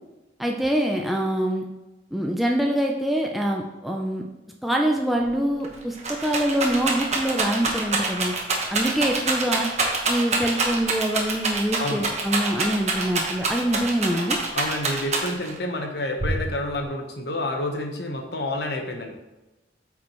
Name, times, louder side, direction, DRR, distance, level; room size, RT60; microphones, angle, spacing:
voice 1, 0.4-1.6 2.1-4.2 4.6-8.3 8.7-9.7 10.1-14.4, right 1 dB, ahead, 0 dB, 0.5 m, -25 dB
Rattle, 5.3-5.4 5.6-15.6 16.2-16.8, right 3 dB, 40° right, 1.3 m, -26 dB
voice 2, 11.8-12.1 14.5-19.1, left 1 dB, 65° left, 3 dB, 1.1 m, -29 dB
8.7 x 6.0 x 3.1 m, 1.1 s
head